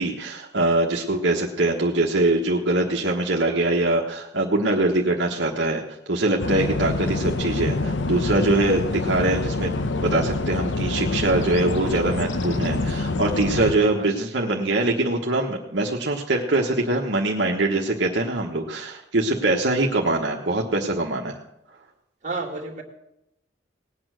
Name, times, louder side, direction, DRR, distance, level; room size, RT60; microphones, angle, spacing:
voice 1, 0.0-5.8 6.1-21.4, right 2 dB, 70° right, -1 dB, 1.3 m, -23 dB
sound 1, 6.4-13.7, left 2 dB, 75° left, 0.8 m, -26 dB
voice 2, 13.7-14.1 22.2-22.8, right 3 dB, 40° right, 0 dB, 2.3 m, -32 dB
18.5 x 8.7 x 6.3 m, 0.85 s
head